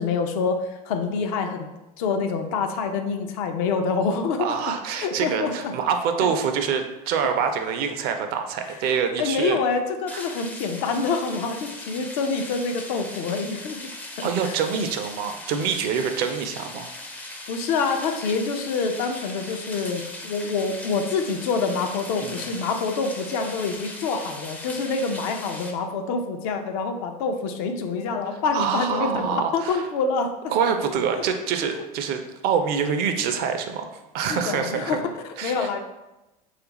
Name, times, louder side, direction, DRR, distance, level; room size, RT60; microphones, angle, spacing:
voice 1, 0.0-1.7 2.0-4.5 5.0-5.7 9.2-13.9 14.2-14.5 17.5-30.3 31.2-31.3 34.3-35.8, left 4 dB, 65° left, 6 dB, 0.5 m, -26 dB
voice 2, 4.4-9.6 10.1-10.2 14.2-16.9 22.2-22.5 28.5-29.8 30.5-35.0 35.4-35.7, right 7 dB, 50° right, 6 dB, 0.4 m, -26 dB
sound 1, 10.1-25.7, left 2 dB, 10° left, 0.4 m, -39 dB
3.3 x 2.4 x 2.9 m, 0.98 s
hypercardioid pair, 90°, 20 cm